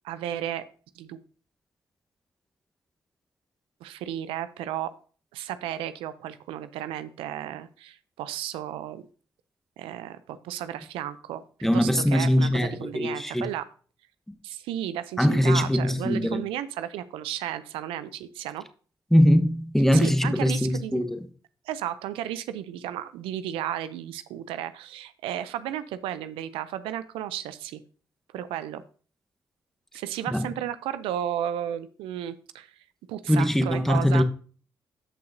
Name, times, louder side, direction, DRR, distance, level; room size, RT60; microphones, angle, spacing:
voice 1, 0.0-0.7 1.0-1.2 3.8-4.9 5.3-9.0 9.8-11.4 11.7-13.7 14.4-18.6 19.9-21.0 21.7-27.8 28.3-28.8 29.9-32.7 33.1-34.2, right 11 dB, 90° right, 0.4 m, -33 dB
voice 2, 11.6-13.5 15.2-16.4 19.1-21.2 30.3-30.4 33.3-34.2, equal, 5° left, 1.0 m, -22 dB
13.0 x 5.7 x 2.6 m
supercardioid pair, 50°, 9 cm